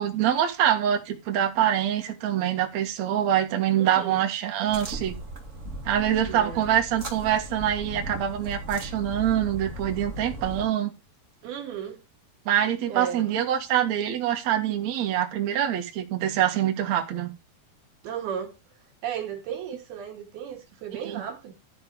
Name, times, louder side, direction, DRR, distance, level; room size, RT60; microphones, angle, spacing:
voice 1, 0.0-5.2 5.8-10.9 12.5-17.3 21.1-21.2, right 10 dB, 55° right, 2.7 m, -25 dB
voice 2, 3.7-4.2 6.3-6.6 11.4-12.0 12.9-13.3 18.0-18.6 19.0-21.5, right 8 dB, 80° right, 3.9 m, -34 dB
sound 1, 4.7-10.7, equal, 30° right, 1.7 m, -37 dB
13.0 x 4.4 x 6.7 m
omnidirectional pair, 4.4 m